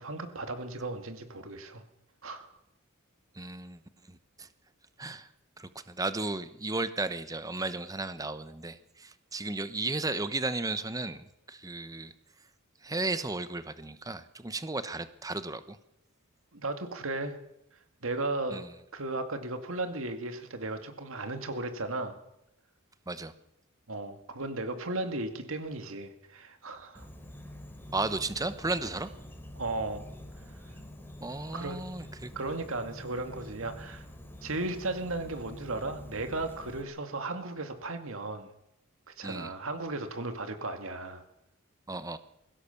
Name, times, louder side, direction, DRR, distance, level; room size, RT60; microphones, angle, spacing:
voice 1, 0.0-1.8 2.2-2.5 16.5-17.4 18.0-18.7 18.9-22.2 23.9-27.1 29.6-30.1 31.5-31.8 32.4-34.0 34.4-38.5 39.1-41.2, right 2 dB, 65° right, 7 dB, 2.2 m, -35 dB
voice 2, 3.3-3.8 4.1-4.5 5.0-5.3 5.6-12.1 12.8-15.8 18.5-18.7 23.1-23.3 27.9-29.1 31.2-32.3 39.2-39.5 41.9-42.2, right 2 dB, 15° right, 12 dB, 0.9 m, -34 dB
Insect, 26.9-36.8, left 1 dB, 10° left, 3.1 m, -47 dB
22.5 x 16.5 x 7.0 m, 0.81 s
head